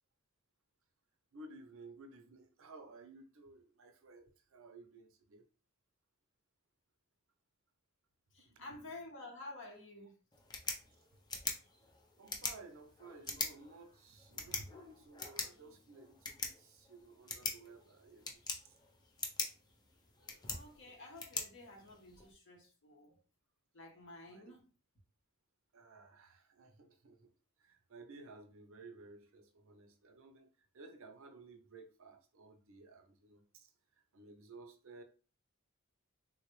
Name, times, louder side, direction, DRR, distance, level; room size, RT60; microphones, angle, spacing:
voice 1, 1.3-5.4 8.4-8.6 12.2-18.7 20.2-20.4 24.3-24.6 25.7-27.3 27.6-30.5 30.7-33.7 34.1-35.0, right 3 dB, 65° right, 0.6 m, -56 dB
voice 2, 8.3-10.2 20.5-23.2 23.7-24.7, left 2 dB, 60° left, 1.1 m, -51 dB
sound 1, 10.3-22.3, left 4 dB, 20° left, 0.5 m, -44 dB
3.8 x 2.3 x 3.1 m
head